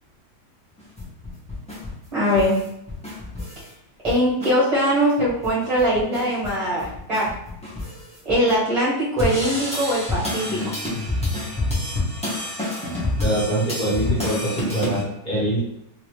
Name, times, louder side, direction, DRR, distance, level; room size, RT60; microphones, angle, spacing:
sound 1, 0.8-3.7 4.0-4.5 4.9-5.0 5.2-8.5 9.2-15.0, left 2 dB, 5° left, 0.9 m, -28 dB
voice 1, 2.1-2.6 4.0-7.3 8.2-10.6, equal, 25° right, -9 dB, 1.3 m, -21 dB
voice 2, 13.2-15.6, right 1 dB, 30° left, -10 dB, 1.5 m, -24 dB
3.1 x 2.9 x 3.2 m, 0.78 s
omnidirectional pair, 1.8 m